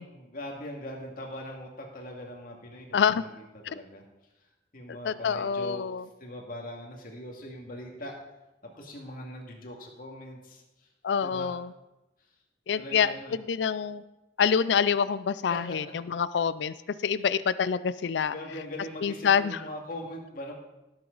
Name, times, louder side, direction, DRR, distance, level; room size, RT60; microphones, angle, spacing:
voice 1, 0.0-4.0 4.7-5.9 6.2-8.2 8.6-10.9 11.2-11.6 12.2-12.3 12.8-13.3 15.5-15.9 17.2-17.3 18.3-20.5, left 1 dB, 50° left, 0 dB, 2.3 m, -41 dB
voice 2, 2.9-3.2 3.7-3.8 5.0-6.0 11.0-11.7 12.7-13.1 13.5-14.0 14.4-16.7 17.0-18.3 19.0-19.6, left 7 dB, 75° left, 16 dB, 0.4 m, -26 dB
17.0 x 7.9 x 4.0 m, 0.97 s
head